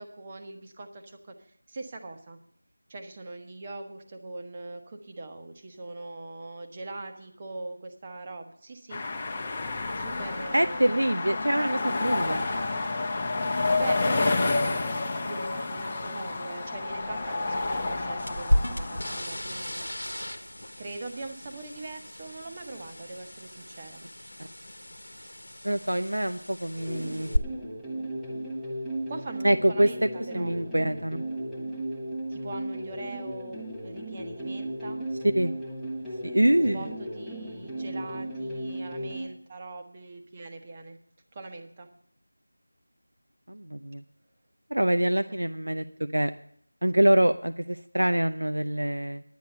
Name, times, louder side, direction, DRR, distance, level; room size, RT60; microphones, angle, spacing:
voice 1, 0.0-2.4 2.9-9.0 9.9-11.1 13.4-14.4 15.2-19.9 20.8-24.0 29.1-30.5 32.3-35.0 36.6-41.0 41.3-41.9 45.3-45.4, right 2 dB, 20° right, 4 dB, 1.2 m, -41 dB
sound 1, 8.9-19.2, left 3 dB, 20° left, 1.0 m, -29 dB
voice 2, 10.5-12.5 25.6-27.3 29.4-30.1 30.3-31.2 35.3-35.5 36.2-36.9 43.5-44.0 44.7-46.3 46.8-49.2, right 1 dB, 85° right, 9 dB, 0.6 m, -25 dB
sound 2, 18.2-27.4, left 1 dB, 85° left, 1.3 m, -34 dB
sound 3, 26.7-39.3, right 1 dB, ahead, 1.1 m, -36 dB
10.5 x 9.2 x 6.7 m, 0.65 s
figure-of-eight pair, 170°, 0 cm